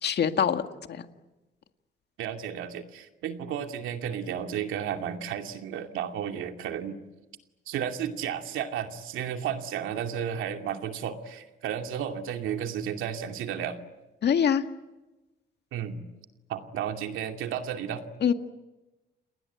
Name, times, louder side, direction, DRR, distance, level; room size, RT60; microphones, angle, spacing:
voice 1, 0.0-0.6 0.9-1.0 14.2-14.6 18.2-18.3, left 8 dB, 60° left, 7 dB, 2.0 m, -23 dB
voice 2, 2.2-7.0 7.7-13.8 15.7-16.0 16.5-18.0, right 8 dB, 85° right, 5 dB, 2.6 m, -33 dB
29.5 x 20.0 x 9.3 m, 1.1 s
cardioid pair, 90°, 20 cm